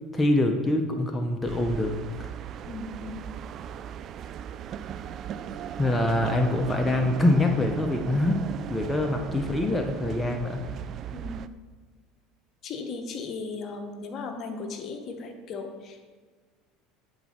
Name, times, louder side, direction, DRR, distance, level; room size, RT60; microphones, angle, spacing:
voice 1, 0.1-2.3 5.8-8.4 8.7-10.6, left 1 dB, 15° left, 3 dB, 0.7 m, -25 dB
sound 1, 1.5-11.5, right 9 dB, 50° right, 0.3 m, -37 dB
voice 2, 2.6-3.2 11.1-11.4 12.6-16.1, left 4 dB, 45° left, 5 dB, 0.9 m, -37 dB
9.1 x 4.1 x 4.3 m, 1.5 s
hypercardioid pair, 75°, 0 cm